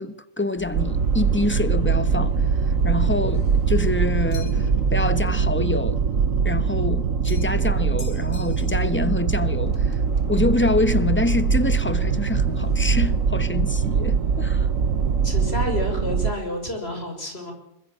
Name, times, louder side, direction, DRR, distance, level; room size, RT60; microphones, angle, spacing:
voice 1, 0.0-2.4 2.8-6.0 6.4-10.0 10.3-14.7, left 2 dB, 10° left, 1.2 m, -26 dB
sound 1, 0.6-7.3 7.6-7.9 8.3-8.4 8.8-15.6, left 2 dB, 85° left, 2.2 m, -38 dB
sound 2, 0.7-16.3, right 6 dB, 75° right, 1.5 m, -22 dB
sound 3, 4.3-4.8 7.2-7.6 8.0-9.0, left 5 dB, 70° left, 3.9 m, -44 dB
voice 2, 15.2-17.5, left 1 dB, 50° left, 6.3 m, -29 dB
25.5 x 21.5 x 7.6 m
omnidirectional pair, 1.4 m